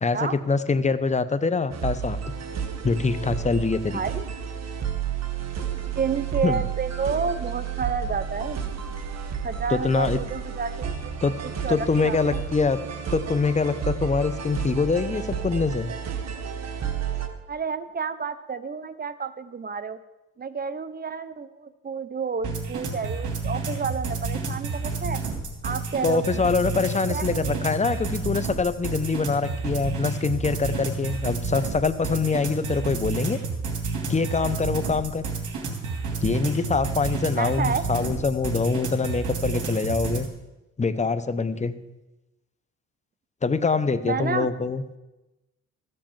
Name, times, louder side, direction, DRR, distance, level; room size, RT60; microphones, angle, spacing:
voice 1, 0.0-2.2 2.8-4.0 6.4-6.6 9.7-10.2 11.2-11.3 11.7-12.8 13.1-15.9 26.0-33.4 34.1-35.2 36.2-40.3 40.8-41.8 43.4-44.8, left 4 dB, 25° left, 12 dB, 0.9 m, -24 dB
sound 1, 1.7-17.3, right 7 dB, 60° right, 1.5 m, -31 dB
voice 2, 3.9-4.3 5.9-8.6 9.4-10.7 11.0-11.2 11.6-12.4 17.5-20.0 20.4-25.2 25.6-26.4 27.1-27.6 37.4-37.8 44.0-44.5, right 5 dB, 30° right, 13 dB, 0.9 m, -30 dB
sound 2, 22.4-40.3, right 4 dB, 75° right, 2.7 m, -30 dB
14.5 x 7.8 x 7.4 m, 1.0 s
cardioid pair, 90°, 30 cm